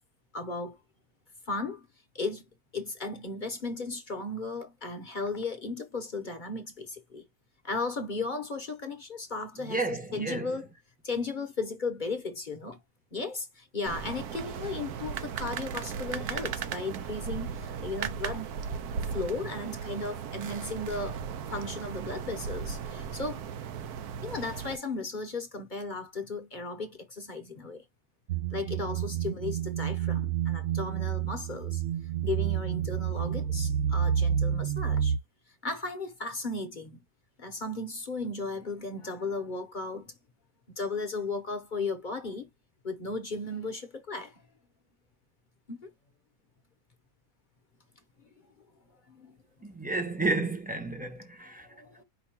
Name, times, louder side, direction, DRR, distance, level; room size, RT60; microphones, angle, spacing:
voice 1, 0.3-0.8 1.5-1.8 2.1-2.4 2.7-7.2 7.6-10.7 11.0-12.8 13.1-18.5 19.1-21.2 21.5-23.4 24.2-27.8 28.5-31.8 32.2-35.2 35.6-37.0 37.4-40.1 40.8-42.5 42.8-44.4 45.7-45.9 49.1-49.4 51.6-52.0, left 3 dB, 40° left, 0.8 m, -35 dB
voice 2, 9.5-10.6 49.6-51.7, right 3 dB, 10° right, 0.7 m, -32 dB
sound 1, 13.9-24.8, right 7 dB, 90° right, 1.2 m, -36 dB
sound 2, 28.3-35.2, right 9 dB, 65° right, 0.7 m, -29 dB
5.2 x 2.2 x 4.3 m
omnidirectional pair, 1.6 m